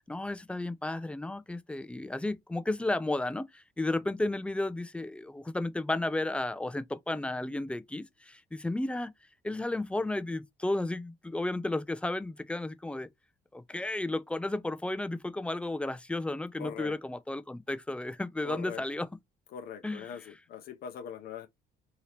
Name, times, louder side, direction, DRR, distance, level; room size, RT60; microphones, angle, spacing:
voice 1, 0.1-9.1 9.4-13.1 13.5-19.1 19.8-20.3, left 2 dB, 5° left, 0.3 m, -33 dB
voice 2, 16.6-17.0 18.4-18.8 19.5-21.5, left 7 dB, 65° left, 0.5 m, -41 dB
2.8 x 2.8 x 3.2 m
cardioid pair, 110°, 17 cm